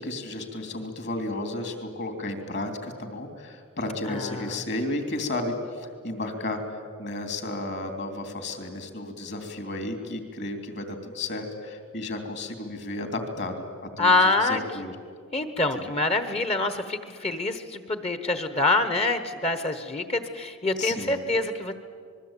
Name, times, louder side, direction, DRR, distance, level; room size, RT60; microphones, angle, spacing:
voice 1, 0.0-13.6 14.0-14.9 15.7-15.9 20.8-21.3, left 2 dB, 50° left, 6 dB, 3.2 m, -33 dB
voice 2, 4.1-4.6 14.0-14.6 15.3-21.7, left 2 dB, 30° left, 10 dB, 1.2 m, -25 dB
26.5 x 21.0 x 9.0 m, 2.1 s
head